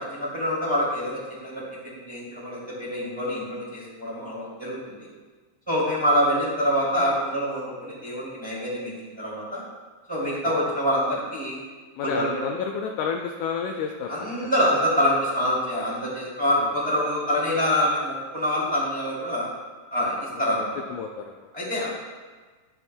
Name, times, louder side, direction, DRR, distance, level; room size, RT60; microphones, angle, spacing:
voice 1, 0.0-5.1 5.7-9.6 10.1-11.6 12.0-12.3 14.1-19.5 19.9-20.7 21.5-21.9, equal, 10° right, -8 dB, 2.0 m, -26 dB
voice 2, 12.0-14.1 14.4-14.5 16.6-16.8 20.6-21.5, left 6 dB, 85° left, 3 dB, 1.7 m, -31 dB
12.0 x 8.2 x 2.2 m, 1.4 s
omnidirectional pair, 4.1 m